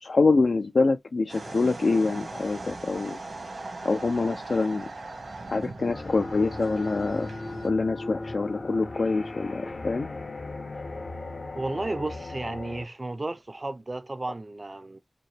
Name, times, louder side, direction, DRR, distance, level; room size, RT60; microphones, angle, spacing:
voice 1, 0.0-3.2 3.8-4.9 5.5-7.3 7.6-10.1, left 3 dB, 80° left, 0.4 m, -25 dB
sound 1, 1.3-7.7, right 2 dB, 85° right, 1.4 m, -39 dB
sound 2, 5.9-12.9, left 2 dB, 60° left, 0.8 m, -37 dB
voice 2, 11.6-15.0, right 2 dB, 40° right, 0.4 m, -33 dB
5.2 x 2.1 x 3.3 m
wide cardioid pair, 65°, 0 cm